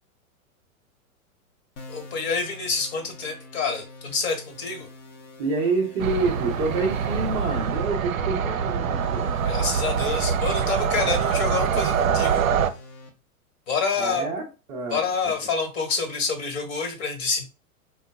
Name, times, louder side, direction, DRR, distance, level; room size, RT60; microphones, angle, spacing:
sound 1, 1.8-13.1, left 2 dB, 25° left, 0.7 m, -46 dB
voice 1, 1.9-4.9 9.4-12.5 13.7-14.2 14.9-17.4, left 4 dB, 45° left, 3 dB, 1.4 m, -27 dB
voice 2, 5.4-9.4 14.0-15.0, right 3 dB, 15° right, -3 dB, 0.4 m, -27 dB
sound 2, 6.0-12.7, right 7 dB, 70° right, 0.5 m, -24 dB
4.4 x 2.3 x 3.5 m, 0.31 s
figure-of-eight pair, 100°, 43 cm